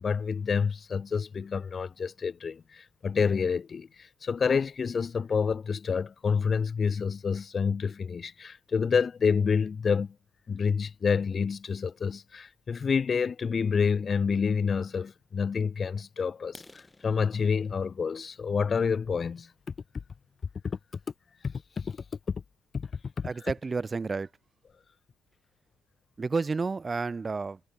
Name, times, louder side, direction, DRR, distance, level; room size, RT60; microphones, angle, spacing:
voice 1, 0.0-10.1 10.5-19.5 20.6-20.8 21.4-22.0 22.3-22.4 22.7-22.9 23.2-23.3, left 6 dB, 40° left, 0.3 m, -28 dB
sound 1, 16.4-20.2 20.7-20.9 21.4-21.5 21.9-22.1 22.4-22.5 22.9-23.0 23.2-23.7, left 2 dB, 15° left, 3.3 m, -57 dB
voice 2, 23.2-24.3 26.2-27.6, right 4 dB, 30° right, 0.5 m, -30 dB
figure-of-eight pair, 45°, 0 cm